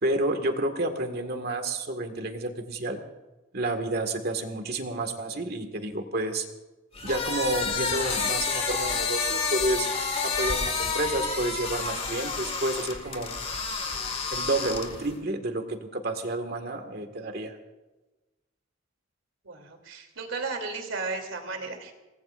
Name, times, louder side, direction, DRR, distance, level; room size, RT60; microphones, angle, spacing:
voice 1, 0.0-3.0 3.5-6.4 7.0-9.9 10.2-13.3 14.3-17.6, right 2 dB, 50° right, 5 dB, 1.9 m, -30 dB
sound 1, 6.9-15.1, left 4 dB, 30° left, 2.0 m, -29 dB
voice 2, 19.4-21.9, right 3 dB, 85° right, 4 dB, 3.1 m, -34 dB
27.5 x 20.0 x 2.6 m, 1.1 s
head